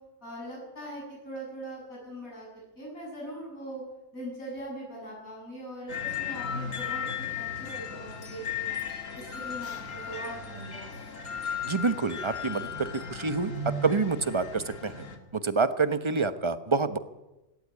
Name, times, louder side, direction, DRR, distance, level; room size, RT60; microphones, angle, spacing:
voice 1, 0.2-2.5 2.8-3.8 4.1-8.8 9.1-11.0, right 1 dB, 85° left, -3 dB, 8.0 m, -41 dB
sound 1, 5.9-15.2, left 5 dB, 65° left, 2.6 m, -36 dB
voice 2, 11.6-14.9 15.4-17.0, right 4 dB, 25° right, 11 dB, 1.0 m, -27 dB
18.0 x 17.5 x 9.6 m, 1.0 s
omnidirectional pair, 1.4 m